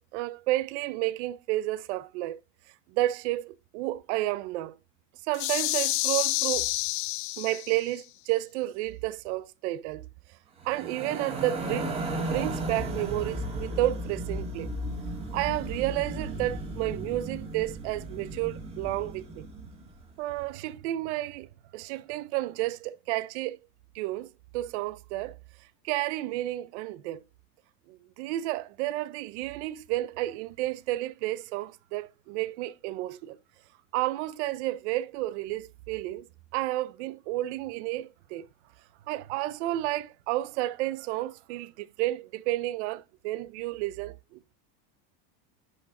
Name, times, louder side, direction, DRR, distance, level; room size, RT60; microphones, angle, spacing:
voice 1, 0.0-2.4 2.9-4.8 5.3-6.7 7.4-10.1 10.6-14.7 15.3-19.4 20.2-21.5 21.7-23.6 23.9-24.3 24.5-25.4 25.8-27.2 27.9-33.4 33.9-36.2 36.5-38.5 39.1-44.5, right 16 dB, 45° right, 0.5 m, -31 dB
sound 1, 5.3-7.9, left 19 dB, 60° left, 0.7 m, -29 dB
sound 2, 10.6-19.9, right 1 dB, 10° right, 1.8 m, -35 dB
10.5 x 4.7 x 3.7 m
supercardioid pair, 170°, 50 cm